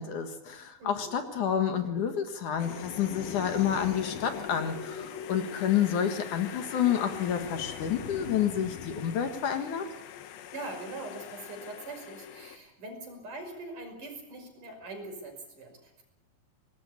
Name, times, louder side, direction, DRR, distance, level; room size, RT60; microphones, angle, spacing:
voice 1, 0.0-9.9, left 8 dB, 65° left, 7 dB, 2.9 m, -29 dB
voice 2, 0.8-1.2 10.5-16.0, right 2 dB, 60° right, 3 dB, 7.3 m, -42 dB
sound 1, 2.6-12.6, left 10 dB, 80° left, 3.1 m, -41 dB
25.0 x 19.5 x 8.6 m, 0.93 s
omnidirectional pair, 4.2 m